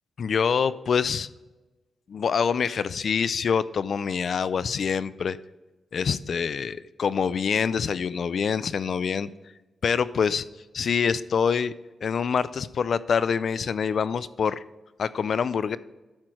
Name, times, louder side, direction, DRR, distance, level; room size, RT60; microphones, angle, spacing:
voice 1, 0.2-1.3 2.1-5.4 5.9-9.3 9.8-10.5 10.7-11.7 12.0-14.6 15.0-15.8, left 6 dB, 55° left, 16 dB, 0.4 m, -25 dB
11.5 x 4.5 x 4.8 m, 1.1 s
wide cardioid pair, 120°, 0 cm